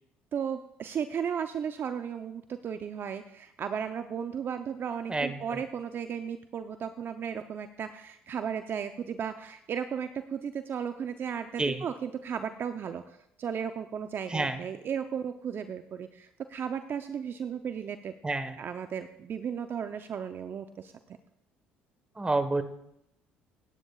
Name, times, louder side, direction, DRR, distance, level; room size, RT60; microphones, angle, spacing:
voice 1, 0.3-18.1 18.6-20.9, right 7 dB, 50° right, 8 dB, 0.7 m, -35 dB
voice 2, 5.1-5.6 11.6-11.8 14.3-14.6 18.2-18.6 22.2-22.6, right 2 dB, 20° right, 9 dB, 1.4 m, -29 dB
27.0 x 9.8 x 2.4 m, 0.80 s
hypercardioid pair, 65°, 5 cm